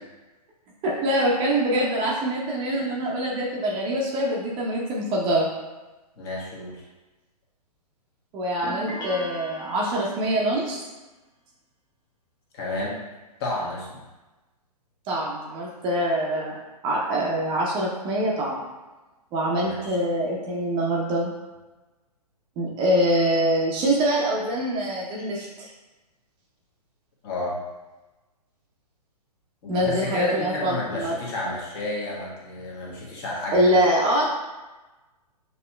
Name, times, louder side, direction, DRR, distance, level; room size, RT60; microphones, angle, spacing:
voice 1, 0.8-5.5 8.3-10.8 15.1-16.6 16.8-18.6 19.3-21.3 22.6-25.7 29.7-31.1 33.5-34.3, right 1 dB, 25° right, -3 dB, 0.7 m, -24 dB
voice 2, 6.2-6.8 12.5-13.0 13.4-14.0 19.5-20.0 27.2-27.6 29.6-33.8, left 2 dB, 40° left, -4 dB, 1.3 m, -31 dB
sound 1, 8.6-10.4, equal, 20° left, 0.7 m, -37 dB
6.5 x 2.9 x 2.2 m, 1.1 s
figure-of-eight pair, 120°, 21 cm